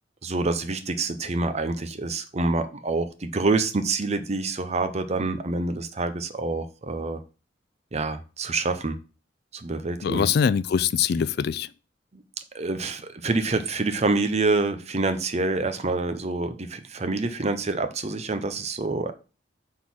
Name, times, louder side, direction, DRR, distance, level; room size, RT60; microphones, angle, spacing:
voice 1, 0.2-7.2 7.9-9.0 9.5-10.3 12.1-12.2 12.5-19.1, right 3 dB, 35° right, 0.7 m, -27 dB
voice 2, 10.0-11.7, left 7 dB, 60° left, 0.3 m, -23 dB
6.2 x 3.8 x 6.0 m
head